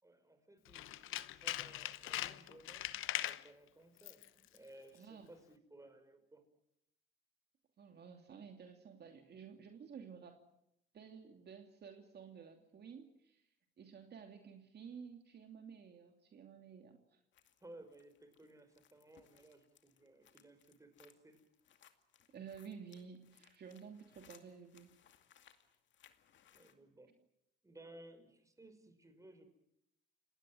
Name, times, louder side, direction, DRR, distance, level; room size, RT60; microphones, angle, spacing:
voice 1, 0.0-6.4 17.6-21.4 26.5-27.1 27.6-29.4, right 1 dB, 15° right, 8 dB, 5.7 m, -59 dB
Tools, 0.7-3.5 4.0-4.3 4.6-4.7, left 14 dB, 85° left, 0.9 m, -41 dB
voice 2, 4.9-5.3 7.8-10.4 10.9-13.4 13.8-17.2 22.3-24.9, right 6 dB, 55° right, 4 dB, 2.8 m, -53 dB
sound 1, 17.3-26.7, left 9 dB, 70° left, 2.4 m, -67 dB
29.5 x 19.0 x 7.6 m, 0.78 s
cardioid pair, 90°, 20 cm